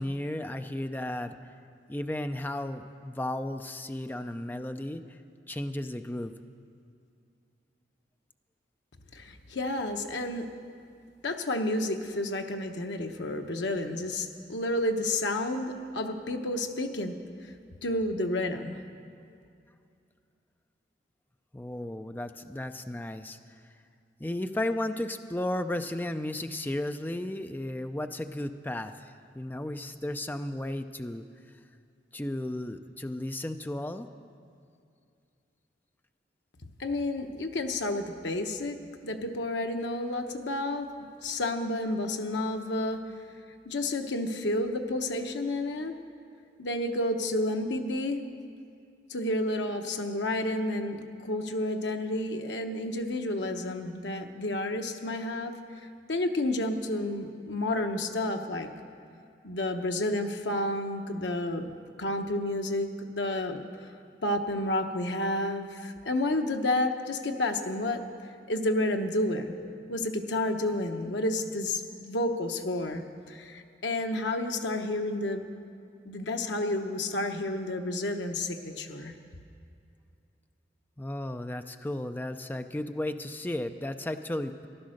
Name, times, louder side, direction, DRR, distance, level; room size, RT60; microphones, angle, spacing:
voice 1, 0.0-1.4 1.9-5.2 5.5-6.3 21.5-23.4 24.2-31.2 32.1-34.1 81.0-84.7, left 1 dB, 10° left, 8 dB, 0.4 m, -34 dB
voice 2, 9.1-10.5 11.2-17.2 17.8-18.8 36.8-43.0 43.6-46.0 46.6-48.2 49.1-55.6 56.1-58.7 59.4-61.7 62.0-63.6 64.2-68.0 68.5-69.5 69.9-75.5 76.0-79.1, left 1 dB, 80° left, 5 dB, 1.0 m, -30 dB
14.5 x 11.5 x 6.4 m, 2.4 s
head